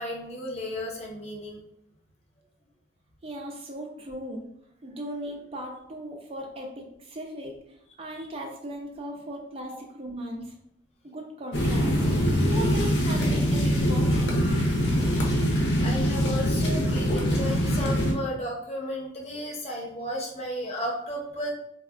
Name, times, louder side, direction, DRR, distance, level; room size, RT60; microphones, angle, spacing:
voice 1, 0.0-1.6 8.1-8.3 15.5-21.5, equal, 40° left, -1 dB, 0.6 m, -34 dB
voice 2, 3.2-4.4 4.8-10.5 11.0-12.0 12.5-14.4, right 1 dB, 35° right, 1 dB, 0.4 m, -37 dB
sound 1, 11.5-18.1, equal, 85° left, 0.6 m, -23 dB
3.4 x 2.2 x 2.4 m, 0.77 s
head